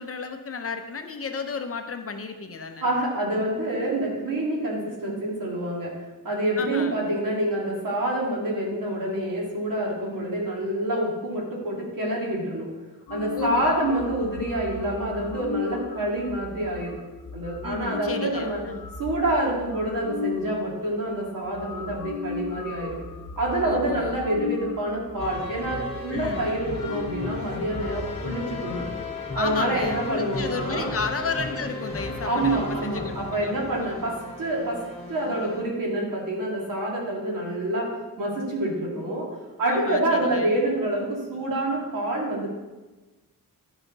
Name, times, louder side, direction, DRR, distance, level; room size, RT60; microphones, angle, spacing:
voice 1, 0.0-2.9 6.6-7.0 10.1-10.4 13.3-13.8 17.6-18.9 23.6-24.2 26.1-26.4 29.3-34.0 39.7-40.5, left 5 dB, 40° left, 6 dB, 0.7 m, -33 dB
voice 2, 2.8-5.9 6.2-12.7 13.1-17.0 17.3-18.6 19.0-23.0 23.4-28.8 29.3-31.0 32.2-34.8 35.1-39.3 39.6-42.5, right 1 dB, 70° right, -4 dB, 2.8 m, -27 dB
sound 1, 13.1-20.5 21.1-21.2 21.4-28.8, left 5 dB, 75° left, 0.9 m, -36 dB
sound 2, 25.2-35.7, left 3 dB, 15° left, 1.5 m, -35 dB
11.5 x 5.6 x 4.0 m, 1.2 s
wide cardioid pair, 165°, 34 cm